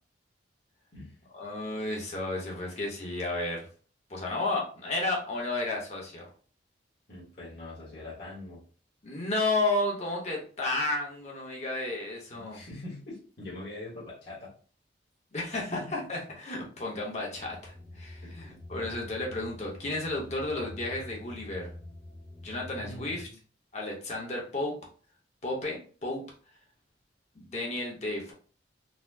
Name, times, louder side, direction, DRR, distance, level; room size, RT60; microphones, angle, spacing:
voice 1, 1.3-3.7 4.1-6.3 9.0-12.6 15.3-21.7 22.4-23.3 23.7-24.7 25.4-26.2 27.3-28.3, left 2 dB, 35° left, -2 dB, 0.9 m, -32 dB
voice 2, 7.1-8.6 12.3-14.5 15.7-15.9 18.2-18.6 22.8-23.4, left 2 dB, 55° left, -7 dB, 1.3 m, -43 dB
sound 1, 17.3-23.3, left 1 dB, ahead, 0.8 m, -46 dB
4.1 x 2.1 x 2.6 m, 0.41 s
head